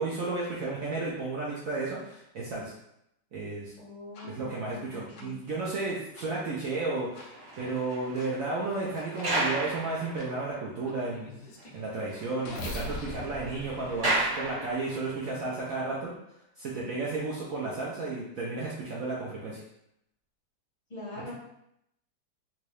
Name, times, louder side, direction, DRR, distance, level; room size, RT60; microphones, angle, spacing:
voice 1, 0.0-2.7 3.3-3.7 4.2-11.3 11.7-16.1 16.6-19.6, right 3 dB, 75° right, -5 dB, 0.7 m, -33 dB
voice 2, 3.8-5.4 20.9-21.3, left 3 dB, 30° left, -7 dB, 0.7 m, -43 dB
sound 1, 4.1-4.3 5.1-5.3 6.1-6.3 7.1-7.3 8.1-8.3 9.1-9.3 10.1-10.3 10.8-14.7, left 1 dB, 65° left, 1.0 m, -42 dB
sound 2, 7.1-10.8 11.1-11.2 11.6-11.7 11.9-15.2 15.9-16.1, right 1 dB, 40° right, 1.4 m, -34 dB
3.5 x 2.7 x 3.2 m, 0.79 s
omnidirectional pair, 2.2 m